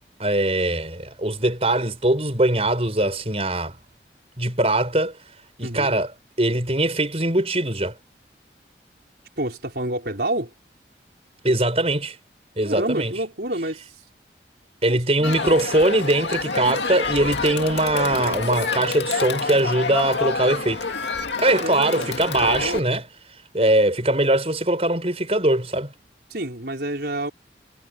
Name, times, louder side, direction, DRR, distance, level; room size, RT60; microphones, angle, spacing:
voice 1, 0.2-3.8 4.4-5.1 5.6-6.1 6.4-7.9 11.4-12.2 12.6-13.1 14.8-20.8 21.4-23.0 23.5-25.9, right 1 dB, 35° right, 6.0 m, -21 dB
voice 2, 5.6-5.9 9.4-10.5 12.6-13.9 14.9-15.3 21.4-22.1 22.4-22.8 26.3-27.3, right 1 dB, 65° right, 5.0 m, -28 dB
Crowd, 15.2-22.8, left 4 dB, 85° left, 2.2 m, -27 dB
head